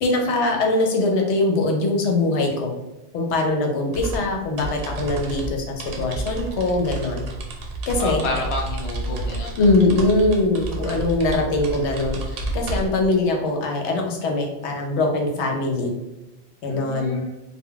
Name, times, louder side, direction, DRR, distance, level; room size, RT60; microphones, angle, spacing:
voice 1, 0.0-2.7 3.1-7.2 7.9-8.2 9.6-15.9 16.6-17.2, left 2 dB, 80° left, 1 dB, 0.9 m, -22 dB
sound 1, 3.9-13.1, right 2 dB, 65° right, 0.7 m, -30 dB
voice 2, 8.0-9.7 16.7-17.3, left 2 dB, 40° left, -1 dB, 0.5 m, -30 dB
2.2 x 2.2 x 3.7 m, 0.99 s
omnidirectional pair, 1.1 m